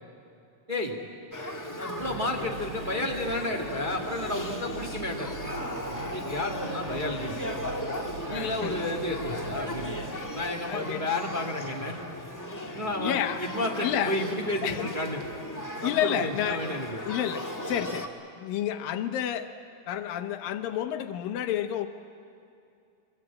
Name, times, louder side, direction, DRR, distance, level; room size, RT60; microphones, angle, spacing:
voice 1, 0.7-1.0 1.7-5.3 5.9-7.6 8.3-9.9 10.3-12.0 12.7-15.2 15.8-17.0, left 1 dB, 20° right, 2 dB, 1.2 m, -32 dB
Male speech man speaking / Child speech kid speaking / Conversation, 1.3-18.1, left 1 dB, 20° left, 0.5 m, -37 dB
sound 1, 2.0-10.3, right 3 dB, 80° right, 5.2 m, -42 dB
voice 2, 8.3-8.8 10.7-11.0 11.8-11.9 13.0-13.4 13.8-14.2 14.6-14.9 15.8-16.6 17.0-18.1 18.4-19.5 19.9-21.9, left 10 dB, 85° left, 8 dB, 2.8 m, -30 dB
25.5 x 24.5 x 8.8 m, 2.5 s
omnidirectional pair, 3.9 m